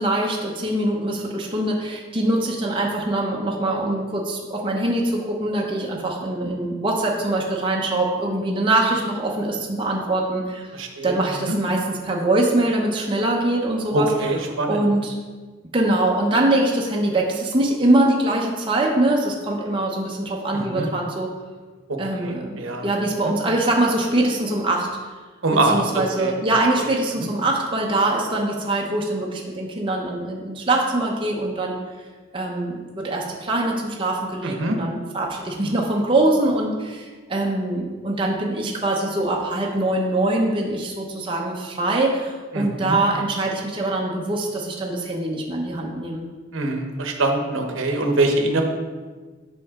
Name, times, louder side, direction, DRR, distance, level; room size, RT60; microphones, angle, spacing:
voice 1, 0.0-10.7 11.0-14.1 14.7-15.2 15.7-21.3 22.0-24.9 25.6-31.8 32.3-46.2, right 2 dB, 25° right, -1 dB, 0.7 m, -23 dB
voice 2, 10.7-11.1 11.5-11.6 13.9-14.9 20.5-20.9 21.9-22.8 25.4-26.3 27.1-27.3 34.4-34.8 42.5-43.0 46.5-48.6, right 2 dB, 80° right, 3 dB, 1.0 m, -23 dB
7.6 x 5.3 x 3.6 m, 1.4 s
head